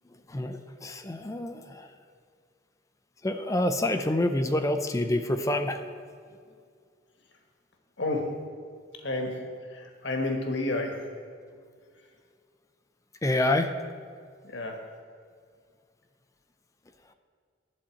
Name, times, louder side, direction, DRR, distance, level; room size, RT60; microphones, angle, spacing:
voice 1, 0.3-1.9 3.2-5.8 13.2-13.7, left 1 dB, 15° left, 8 dB, 0.4 m, -27 dB
voice 2, 8.0-8.4 8.9-9.4 9.7-11.1 14.4-14.8, left 2 dB, 65° left, 2 dB, 1.3 m, -31 dB
11.5 x 4.2 x 7.6 m, 2.1 s
head